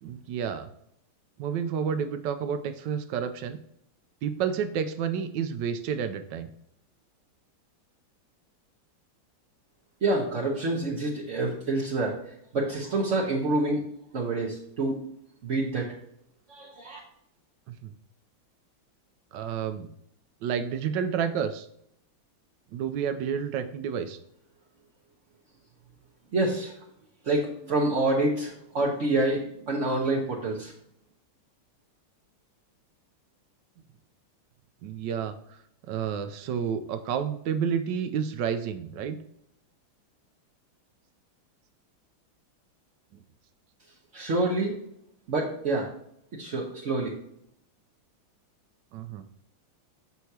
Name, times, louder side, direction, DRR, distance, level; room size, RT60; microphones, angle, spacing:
voice 1, 0.0-0.7 1.4-3.6 4.2-6.5 17.8-17.9 19.3-19.9 20.4-21.7 22.7-24.2 34.8-35.4 35.9-39.2 48.9-49.2, right 7 dB, 75° right, 9 dB, 1.0 m, -30 dB
voice 2, 10.0-13.9 14.1-15.0 15.4-15.9 16.5-17.0 26.3-26.7 27.2-30.7 44.1-44.7 45.3-45.9 46.3-47.2, right 2 dB, 50° right, -3 dB, 0.9 m, -27 dB
6.2 x 5.6 x 2.8 m, 0.74 s
omnidirectional pair, 2.3 m